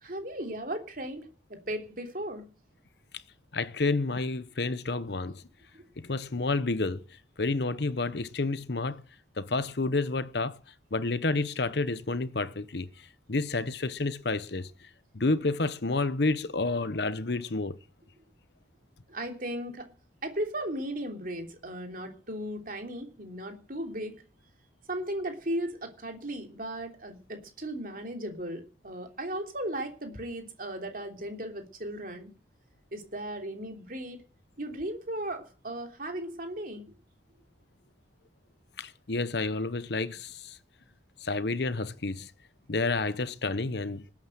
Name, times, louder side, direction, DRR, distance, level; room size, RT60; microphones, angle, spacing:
voice 1, 0.0-2.5 5.7-5.8 19.1-19.9 20.2-24.2 24.9-32.3 32.9-34.2 34.6-36.9, right 1 dB, 45° right, 3.1 m, -36 dB
voice 2, 3.5-5.4 6.0-7.0 7.4-9.0 9.4-10.6 10.9-12.9 13.3-14.7 15.1-17.8 38.8-40.6 41.2-42.3 42.7-44.1, left 3 dB, 60° left, 0.9 m, -30 dB
20.0 x 9.0 x 7.8 m
head